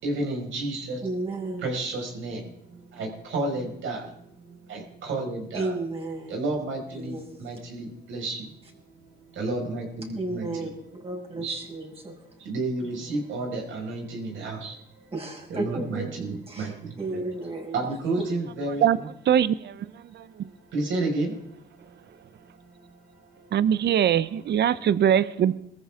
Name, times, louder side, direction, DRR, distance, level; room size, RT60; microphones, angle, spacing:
voice 1, 0.0-1.0 1.4-5.9 6.3-8.5 9.2-10.7 11.3-11.6 12.5-15.1 15.5-17.2 17.7-19.1 20.7-21.4 21.8-21.9 22.4-22.5 23.1-23.9 24.7-25.3, right 2 dB, 75° right, 0 dB, 5.7 m, -32 dB
voice 2, 1.0-1.7 5.5-6.4 6.9-7.4 10.1-12.4 12.8-13.2 15.1-17.8 18.2-18.3, right 2 dB, 30° right, -2 dB, 5.7 m, -34 dB
voice 3, 19.3-20.5 23.5-25.5, right 9 dB, 60° right, 17 dB, 0.7 m, -22 dB
22.0 x 14.5 x 3.8 m, 0.75 s
cardioid pair, 90°, 20 cm